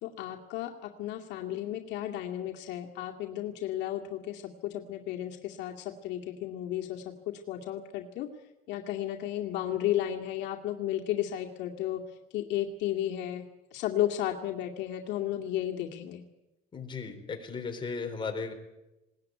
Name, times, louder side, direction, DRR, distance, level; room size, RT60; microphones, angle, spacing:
voice 1, 0.0-8.3 8.7-12.0 12.3-13.4 13.7-16.2, left 12 dB, 75° left, 1 dB, 2.2 m, -33 dB
voice 2, 16.7-18.5, left 4 dB, 25° left, 4 dB, 4.2 m, -36 dB
20.5 x 18.5 x 9.3 m, 0.96 s
cardioid pair, 125°, 18 cm